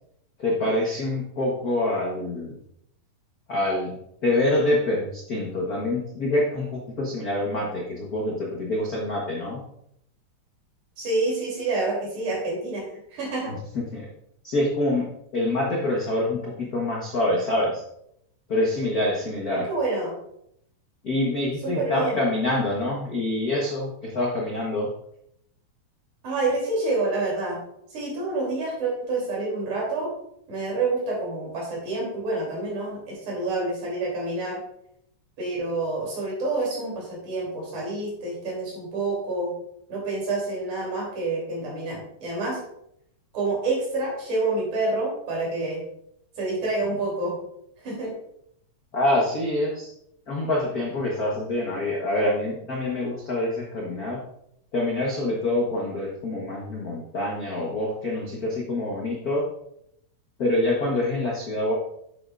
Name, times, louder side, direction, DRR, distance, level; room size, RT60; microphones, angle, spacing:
voice 1, 0.4-2.5 3.5-3.9 4.2-9.6 13.7-14.1 14.4-15.1 15.3-17.8 18.5-19.6 21.0-24.9 48.9-49.9 50.3-54.2 54.7-59.4 60.4-61.7, left 1 dB, 75° left, -3 dB, 0.8 m, -26 dB
voice 2, 11.0-13.5 19.5-20.1 21.6-22.2 26.2-27.6 27.9-30.1 30.5-34.6 35.4-39.5 39.9-42.6 43.3-45.8 46.4-47.4 47.8-48.1, right 2 dB, 65° right, -3 dB, 4.6 m, -28 dB
9.7 x 7.8 x 2.5 m, 0.74 s
omnidirectional pair, 3.8 m